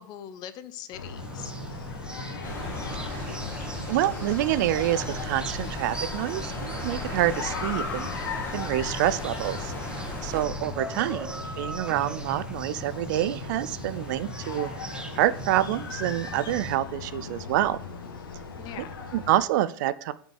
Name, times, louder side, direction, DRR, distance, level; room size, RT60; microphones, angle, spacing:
voice 1, 0.0-1.5 18.6-19.1, left 10 dB, 35° left, 13 dB, 0.7 m, -43 dB
sound 1, 0.9-19.4, left 5 dB, 80° left, 1.6 m, -38 dB
sound 2, 1.2-16.8, right 2 dB, 5° right, 0.8 m, -40 dB
sound 3, 2.4-10.4, left 1 dB, 15° left, 2.3 m, -37 dB
voice 2, 3.0-3.3 3.9-8.2 8.5-9.7 10.2-14.7 15.2-17.8 19.1-20.1, right 13 dB, 55° right, 17 dB, 0.5 m, -27 dB
6.0 x 5.4 x 6.3 m, 0.62 s
hypercardioid pair, 120°, 12 cm